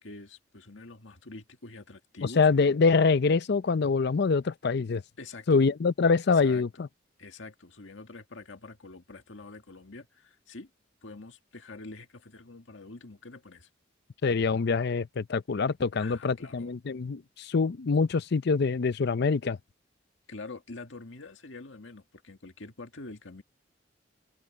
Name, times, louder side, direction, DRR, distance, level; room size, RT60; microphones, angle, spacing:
voice 1, 0.0-2.5 5.2-5.7 6.3-6.6 7.2-10.7 11.0-13.7 15.9-16.7 20.3-23.4, left 3 dB, 85° left, 1.9 m, -45 dB
voice 2, 2.4-5.0 5.5-6.9 14.2-19.6, left 4 dB, 60° left, 0.5 m, -25 dB
head